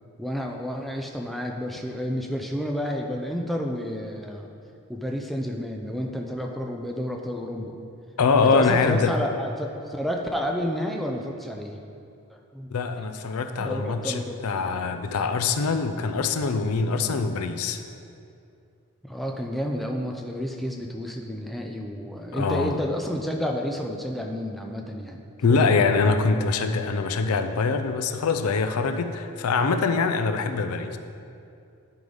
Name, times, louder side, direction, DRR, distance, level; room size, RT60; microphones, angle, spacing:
voice 1, 0.2-4.5 4.9-7.8 8.4-11.8 12.3-12.7 13.6-14.4 19.0-25.7, equal, ahead, 1 dB, 0.4 m, -30 dB
voice 2, 8.2-9.2 12.7-17.8 22.3-22.8 25.4-31.0, left 4 dB, 90° left, 9 dB, 0.5 m, -24 dB
11.0 x 3.9 x 5.2 m, 2.5 s
head